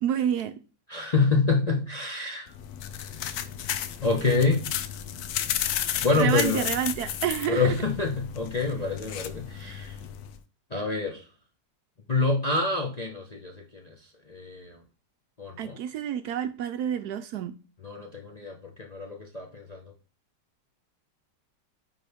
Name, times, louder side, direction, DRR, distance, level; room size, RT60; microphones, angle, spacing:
voice 1, 0.0-0.5 6.2-7.7 15.6-17.6, right 9 dB, 70° right, 1.0 m, -28 dB
voice 2, 0.9-2.5 4.0-4.6 6.0-6.7 7.5-10.0 10.7-11.2 12.1-13.9 14.3-14.8 15.4-15.8 17.8-19.8, left 3 dB, 35° left, 0.7 m, -27 dB
sound 1, 2.5-10.4, left 10 dB, 70° left, 1.0 m, -33 dB
9.5 x 3.8 x 3.5 m
omnidirectional pair, 1.9 m